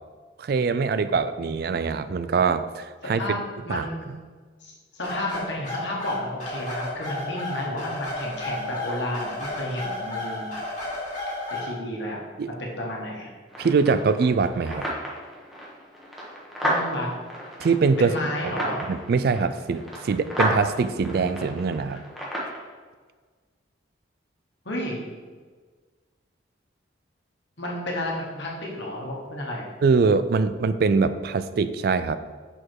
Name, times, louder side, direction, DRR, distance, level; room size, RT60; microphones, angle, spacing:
voice 1, 0.4-3.2 3.7-3.9 12.4-12.5 13.6-14.9 17.6-18.1 18.4-18.6 18.9-22.0 29.8-32.2, right 4 dB, 55° right, 13 dB, 0.3 m, -23 dB
voice 2, 3.0-3.4 3.6-4.2 4.6-10.5 11.5-12.2 12.6-13.3 16.6-17.1 18.0-18.8 24.7-25.0 27.6-29.7, left 1 dB, 65° left, -2 dB, 1.6 m, -32 dB
sound 1, 5.0-11.7, left 2 dB, 40° left, 2.1 m, -32 dB
sound 2, 13.5-22.6, equal, ahead, 1.2 m, -32 dB
6.1 x 4.9 x 4.6 m, 1.5 s
head